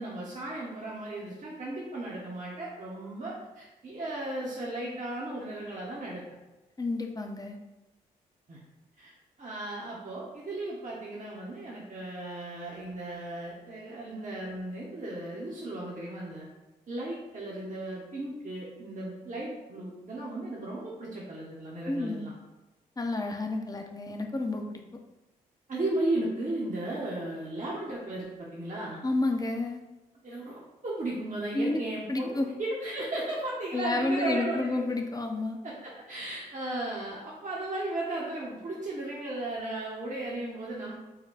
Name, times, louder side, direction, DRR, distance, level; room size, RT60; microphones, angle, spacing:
voice 1, 0.0-6.2 8.5-8.6 9.0-9.1 9.4-16.5 16.9-22.3 25.7-29.0 30.2-34.8 35.6-40.9, right 1 dB, 40° right, -5 dB, 1.0 m, -35 dB
voice 2, 6.8-7.6 21.9-22.3 23.0-24.8 29.0-29.8 31.5-31.8 32.1-32.5 33.7-35.6, left 2 dB, 20° left, 3 dB, 0.7 m, -30 dB
4.1 x 2.2 x 4.1 m, 1.0 s
hypercardioid pair, 40°, 19 cm